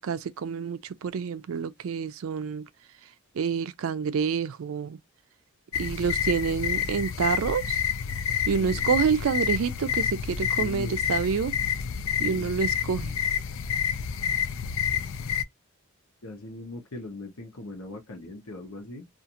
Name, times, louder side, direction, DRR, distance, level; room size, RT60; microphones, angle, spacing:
voice 1, 0.0-2.6 3.4-5.0 5.8-7.8 8.5-11.5 12.2-13.2, right 6 dB, 70° right, 0.4 m, -28 dB
sound 1, 5.7-15.4, left 8 dB, 60° left, 0.3 m, -29 dB
voice 2, 10.5-11.0 12.3-12.5 16.2-19.1, left 2 dB, 80° left, 0.8 m, -40 dB
2.4 x 2.4 x 2.7 m
head